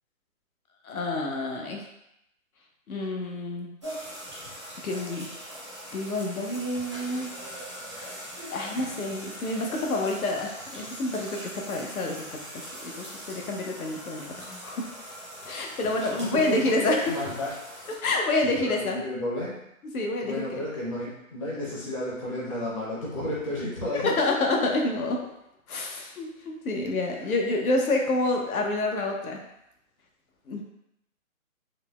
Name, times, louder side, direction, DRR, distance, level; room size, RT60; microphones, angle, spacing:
voice 1, 0.8-1.8 2.9-3.7 4.8-5.3 5.9-7.3 8.5-14.9 15.5-17.2 18.0-19.0 19.9-20.6 24.0-25.2 25.7-29.4 30.5-30.6, left 2 dB, 80° left, 1 dB, 0.8 m, -28 dB
sound 1, 3.8-18.0, right 1 dB, 20° right, 0.4 m, -40 dB
voice 2, 16.2-17.5 18.6-19.6 20.2-24.2 27.2-27.3, left 1 dB, 25° left, -7 dB, 0.6 m, -32 dB
3.9 x 2.0 x 2.3 m, 0.81 s
hypercardioid pair, 160°, 42 cm